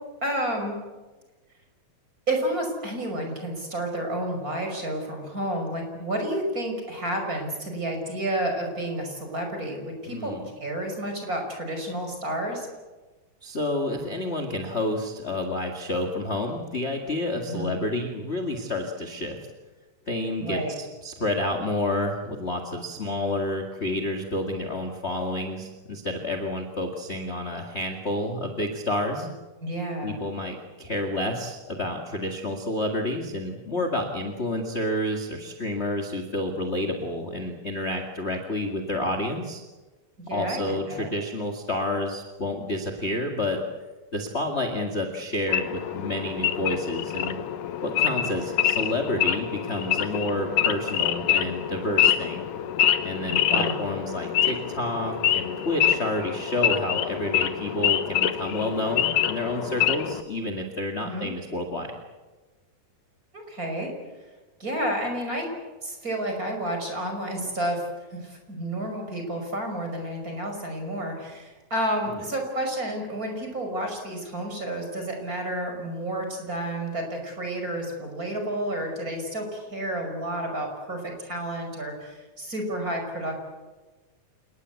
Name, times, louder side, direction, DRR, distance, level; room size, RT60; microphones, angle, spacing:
voice 1, 0.2-0.8 2.3-10.3 10.6-12.7 17.5-17.8 20.4-20.7 29.6-30.2 40.3-41.1 53.3-53.9 61.0-61.3 63.3-63.9 64.6-65.5 65.8-83.4, right 1 dB, 20° right, 3 dB, 5.8 m, -30 dB
voice 2, 10.1-10.4 13.4-19.4 20.1-20.6 21.0-29.3 30.0-39.6 40.3-43.6 44.1-47.4 47.8-52.4 53.0-61.9 72.1-72.2, left 1 dB, 25° left, 4 dB, 1.5 m, -29 dB
Wild animals / Idling, 45.5-60.2, left 10 dB, 70° left, 2.6 m, -26 dB
28.5 x 19.5 x 8.3 m, 1.2 s
omnidirectional pair, 4.1 m